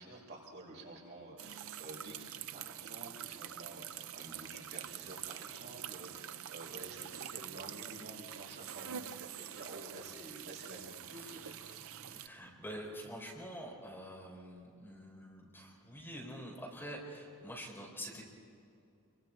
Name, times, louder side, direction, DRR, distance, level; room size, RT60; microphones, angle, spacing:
voice 1, 0.0-11.5, right 2 dB, 50° right, -3 dB, 5.8 m, -50 dB
sound 1, 1.4-12.3, right 10 dB, 65° right, 0.6 m, -46 dB
voice 2, 11.1-18.2, equal, 10° left, -2 dB, 4.4 m, -47 dB
29.0 x 24.5 x 4.6 m, 2.6 s
head